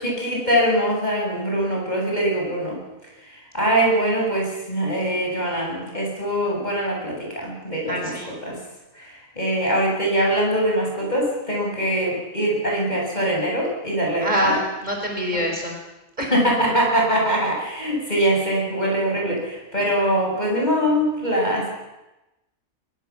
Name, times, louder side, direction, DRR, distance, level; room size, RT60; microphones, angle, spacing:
voice 1, 0.0-2.8 3.3-8.6 8.9-14.6 15.3-15.4 16.3-21.7, equal, 35° left, -1 dB, 7.9 m, -23 dB
voice 2, 7.9-8.3 14.2-15.7 16.2-16.3, equal, 35° right, 1 dB, 5.5 m, -24 dB
23.5 x 22.0 x 7.4 m, 1.0 s
omnidirectional pair, 1.3 m